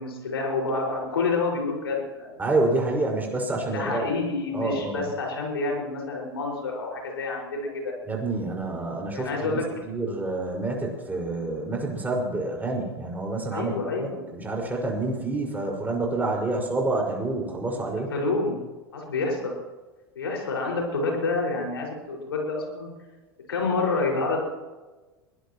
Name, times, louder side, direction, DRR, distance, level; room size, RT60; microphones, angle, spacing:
voice 1, 0.0-2.4 3.7-7.9 9.1-9.9 13.5-14.2 18.1-18.6 18.9-19.5 20.2-22.9 23.5-24.4, left 3 dB, 75° left, 0 dB, 5.7 m, -28 dB
voice 2, 2.4-4.0 4.5-5.1 8.0-18.1, right 2 dB, 15° right, -1 dB, 5.6 m, -28 dB
22.5 x 18.5 x 3.1 m, 1.2 s
figure-of-eight pair, 85°, 13 cm